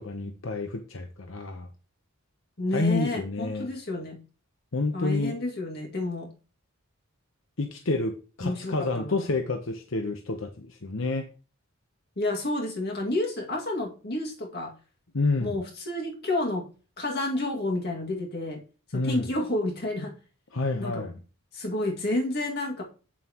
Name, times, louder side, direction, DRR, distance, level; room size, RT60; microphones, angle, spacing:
voice 1, 0.0-1.7 2.7-3.7 4.7-5.4 7.6-11.3 15.1-15.6 18.9-19.2 20.5-21.2, left 3 dB, 65° left, 5 dB, 0.9 m, -29 dB
voice 2, 2.6-4.2 4.9-6.3 8.4-9.4 12.2-14.7 15.4-16.7 17.0-18.6 18.9-20.1 20.8-21.1 21.5-22.8, left 1 dB, 50° left, 0 dB, 2.2 m, -30 dB
8.6 x 7.4 x 3.0 m, 0.35 s
head